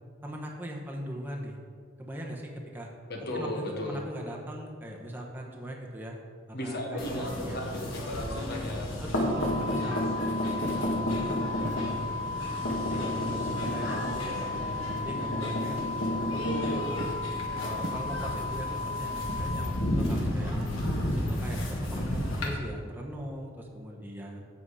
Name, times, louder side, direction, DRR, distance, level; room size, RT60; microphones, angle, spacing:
voice 1, 0.2-1.6 2.0-2.9 3.3-6.2 6.5-7.6 9.0-10.3 10.6-12.0 12.8-15.8 16.2-17.1 17.5-20.5 21.0-24.5, equal, 10° right, -1 dB, 1.0 m, -40 dB
voice 2, 3.1-4.0 6.5-8.9 12.8-13.6, left 1 dB, 55° left, 0 dB, 1.5 m, -36 dB
sound 1, 7.0-22.5, left 1 dB, 80° left, 1.6 m, -32 dB
sound 2, 9.3-19.7, left 3 dB, 65° right, 1.7 m, -36 dB
Walk footsteps, 10.6-11.0 11.6-11.9 12.7-13.0 13.7-14.0 14.9-15.2 16.1-16.6 17.0-17.3 17.8-18.4 19.3-19.8, right 1 dB, 40° right, 0.8 m, -41 dB
7.9 x 7.1 x 4.8 m, 2.1 s
head